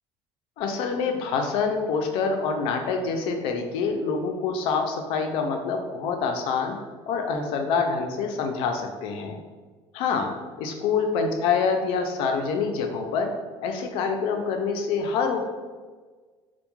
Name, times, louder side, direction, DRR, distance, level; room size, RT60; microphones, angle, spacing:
voice 1, 0.6-6.8 7.1-9.4 9.9-10.3 10.6-13.3 13.6-15.4, left 5 dB, 65° left, 4 dB, 0.4 m, -26 dB
2.2 x 2.1 x 2.9 m, 1.4 s
cardioid pair, 165°, 10 cm